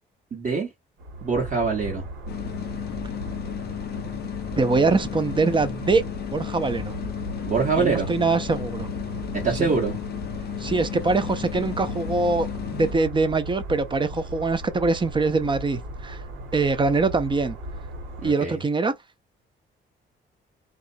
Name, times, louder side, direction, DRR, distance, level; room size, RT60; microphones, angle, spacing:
voice 1, 0.3-0.7 1.2-2.0 7.5-8.1 9.4-9.9 18.2-18.6, right 4 dB, 40° right, 1.0 m, -24 dB
sound 1, 1.0-18.3, right 1 dB, 80° right, 1.4 m, -37 dB
sound 2, 2.3-12.9, left 11 dB, 55° left, 0.4 m, -34 dB
voice 2, 4.6-6.0 6.3-6.9 7.8-8.9 9.5-9.7 10.6-16.2 16.5-17.6 18.2-18.9, right 3 dB, 25° right, 0.5 m, -23 dB
2.4 x 2.2 x 2.5 m
cardioid pair, 90°, 20 cm